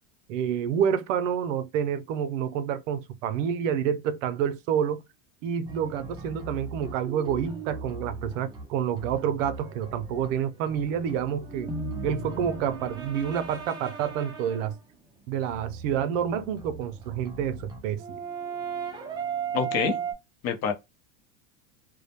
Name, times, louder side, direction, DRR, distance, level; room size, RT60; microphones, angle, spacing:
voice 1, 0.3-5.0 5.4-11.7 12.0-14.7 15.3-18.2, right 8 dB, 70° right, 0.5 m, -28 dB
sound 1, 5.6-14.8 15.5-20.1, right 5 dB, 10° right, 0.3 m, -37 dB
voice 2, 19.5-19.9 20.4-20.7, left 6 dB, 40° left, 0.7 m, -26 dB
2.2 x 2.0 x 2.8 m
supercardioid pair, 120°, 39 cm